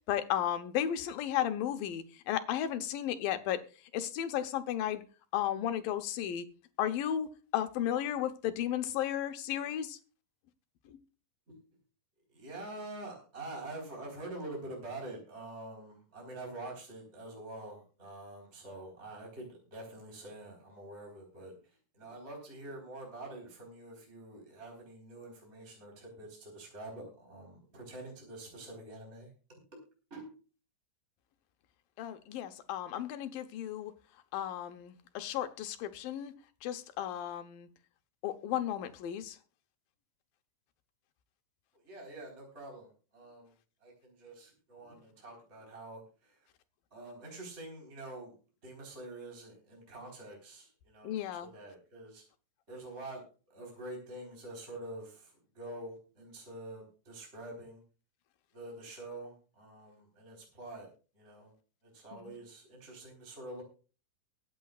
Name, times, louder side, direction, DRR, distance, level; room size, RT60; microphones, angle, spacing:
voice 1, 0.1-3.6 3.9-5.0 5.3-6.5 6.8-7.3 7.5-10.0 10.9-11.0 32.0-33.9 34.3-36.3 36.6-37.7 38.2-39.4 51.0-51.5 62.1-62.4, left 11 dB, 85° left, 2.8 m, -34 dB
voice 2, 12.3-21.5 22.0-29.3 30.1-30.3 41.8-43.5 43.8-46.3 46.9-48.3 48.6-52.2 52.7-53.2 53.5-57.8 58.5-60.9 61.1-61.5 61.9-63.6, right 2 dB, 20° right, 4.2 m, -46 dB
23.0 x 9.1 x 2.4 m
omnidirectional pair, 3.9 m